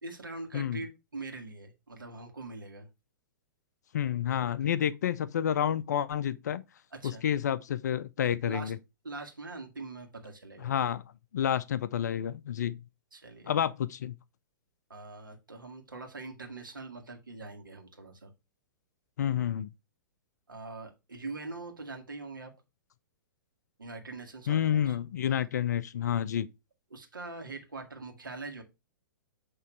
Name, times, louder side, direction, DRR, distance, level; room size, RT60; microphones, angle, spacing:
voice 1, 0.0-2.9 6.9-7.2 8.4-8.7 9.0-10.7 13.1-13.5 14.9-18.3 20.5-22.5 23.8-25.0 26.9-28.6, right 3 dB, 75° right, 1.6 m, -43 dB
voice 2, 3.9-6.6 7.0-8.8 10.6-11.0 11.3-12.8 13.5-14.1 19.2-19.7 24.5-26.5, left 9 dB, 55° left, 0.4 m, -29 dB
8.2 x 3.1 x 4.4 m
figure-of-eight pair, 110°, 11 cm